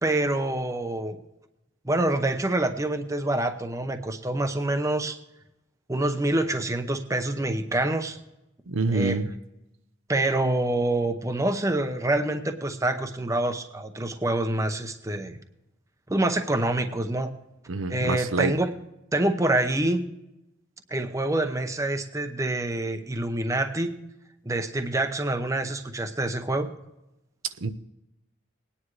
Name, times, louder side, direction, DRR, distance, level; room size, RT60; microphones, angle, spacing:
voice 1, 0.0-1.2 1.8-5.2 5.9-8.2 8.9-9.2 10.1-15.4 16.1-17.3 17.9-18.7 19.1-20.0 20.9-23.9 24.4-26.7, right 1 dB, 15° right, 7 dB, 0.8 m, -26 dB
voice 2, 8.7-9.3 17.7-18.5 27.6-27.7, right 3 dB, 85° right, 10 dB, 0.7 m, -26 dB
20.0 x 9.8 x 3.2 m, 0.90 s
head